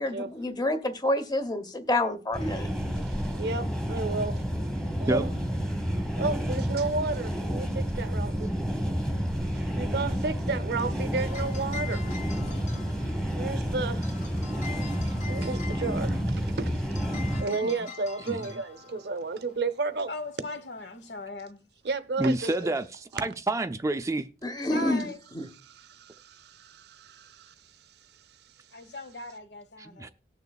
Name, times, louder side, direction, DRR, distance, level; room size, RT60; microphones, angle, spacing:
voice 1, 0.0-2.7 24.4-25.1 25.3-25.5, left 1 dB, 25° left, 0.8 m, -28 dB
sound 1, 2.3-17.4, equal, 5° left, 1.1 m, -30 dB
voice 2, 3.4-4.4 5.0-5.3 6.2-8.5 9.8-12.2 13.4-14.1 15.0-16.7 17.1-20.1 21.8-22.5 25.6-27.5, right 3 dB, 65° right, 0.6 m, -32 dB
sound 2, 10.9-21.3, left 5 dB, 45° left, 1.9 m, -45 dB
voice 3, 20.1-21.6 24.6-25.2 28.7-30.1, left 2 dB, 75° left, 1.0 m, -38 dB
voice 4, 22.2-24.3 29.8-30.1, right 2 dB, 20° right, 0.3 m, -28 dB
18.5 x 6.7 x 2.3 m
head